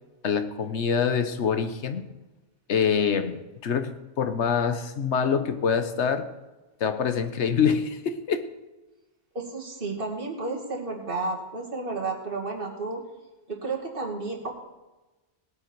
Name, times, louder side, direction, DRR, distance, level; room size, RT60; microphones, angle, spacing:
voice 1, 0.2-2.0 2.7-6.3 6.8-8.5, left 6 dB, 85° left, 10 dB, 1.3 m, -25 dB
voice 2, 9.3-13.0 13.5-14.5, right 3 dB, 50° right, -1 dB, 2.5 m, -32 dB
18.5 x 8.7 x 4.6 m, 1.1 s
omnidirectional pair, 1.1 m